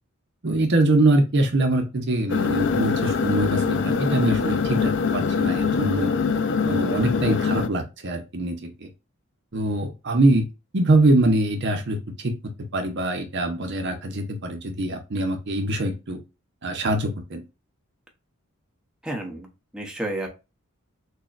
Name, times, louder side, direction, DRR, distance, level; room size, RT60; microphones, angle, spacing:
voice 1, 0.4-6.1 6.6-8.9 9.5-10.5 10.7-12.3 12.7-16.2 16.6-17.4, right 2 dB, 50° right, 4 dB, 0.7 m, -23 dB
sound 1, 2.3-7.7, left 5 dB, 55° left, 0.4 m, -23 dB
voice 2, 19.0-19.5 19.7-20.3, right 1 dB, 5° right, 0 dB, 0.8 m, -30 dB
6.4 x 2.2 x 2.4 m, 0.27 s
head